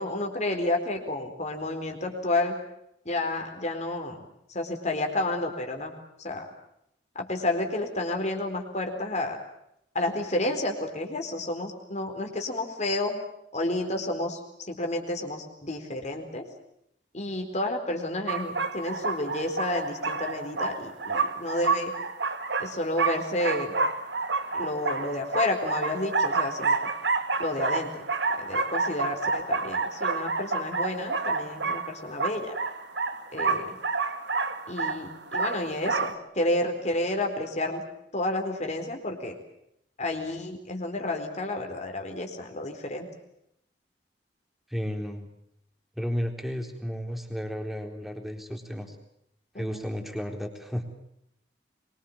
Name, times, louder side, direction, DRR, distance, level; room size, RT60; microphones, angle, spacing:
voice 1, 0.0-2.6 3.1-4.2 4.5-5.9 6.2-6.4 7.1-9.4 9.9-13.2 13.5-16.5 17.1-21.9 22.6-23.8 24.5-26.9 27.4-28.1 28.4-32.5 33.3-33.8 34.7-37.8 38.1-39.4 40.0-43.1 49.5-49.8, left 2 dB, 40° left, 4 dB, 4.3 m, -30 dB
sound 1, 18.3-36.1, right 4 dB, 80° right, 2.4 m, -29 dB
voice 2, 44.7-45.3 46.0-49.0 49.6-50.8, equal, ahead, 4 dB, 4.0 m, -33 dB
24.5 x 24.0 x 7.3 m, 0.78 s
head